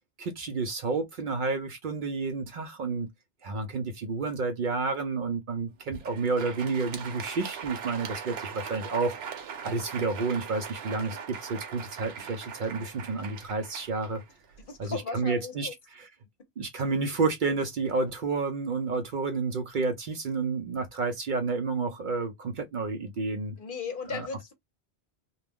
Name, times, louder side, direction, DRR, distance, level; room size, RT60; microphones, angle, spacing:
voice 1, 0.2-3.1 3.4-9.2 9.6-14.2 14.8-16.1 16.6-23.6 24.1-24.3, right 4 dB, 60° right, 0.6 m, -30 dB
Crowd, 5.8-14.8, right 7 dB, 75° right, 0.9 m, -41 dB
voice 2, 14.7-15.7 23.6-24.5, left 5 dB, 55° left, 0.8 m, -36 dB
2.3 x 2.0 x 3.4 m
omnidirectional pair, 1.1 m